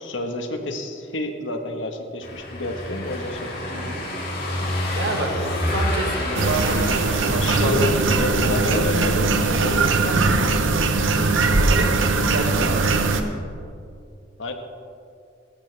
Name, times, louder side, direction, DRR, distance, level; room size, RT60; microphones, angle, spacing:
voice 1, 0.0-3.9 7.4-10.4 14.4-14.5, left 1 dB, 75° left, 4 dB, 1.5 m, -28 dB
Car passing by / Engine, 2.2-8.9, left 1 dB, 50° left, 3.2 m, -28 dB
voice 2, 3.7-4.0 4.9-7.7 11.6-12.9, right 2 dB, 70° right, 2 dB, 2.0 m, -29 dB
sound 1, 6.3-13.2, right 3 dB, 85° right, 1.1 m, -20 dB
18.5 x 14.0 x 3.5 m, 2.4 s
head